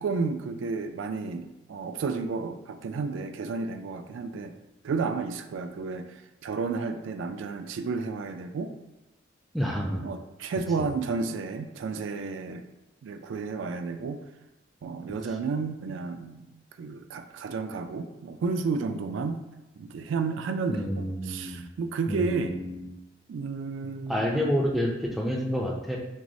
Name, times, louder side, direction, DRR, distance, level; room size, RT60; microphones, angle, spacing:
voice 1, 0.0-4.5 4.8-8.7 10.0-12.6 13.0-14.2 14.8-16.4 16.8-19.4 19.8-22.6 23.3-24.6, right 4 dB, 85° right, 8 dB, 0.3 m, -32 dB
voice 2, 9.5-10.0 20.7-21.6 22.1-22.9 24.1-26.0, equal, ahead, -1 dB, 0.3 m, -29 dB
5.9 x 2.0 x 2.6 m, 0.97 s
head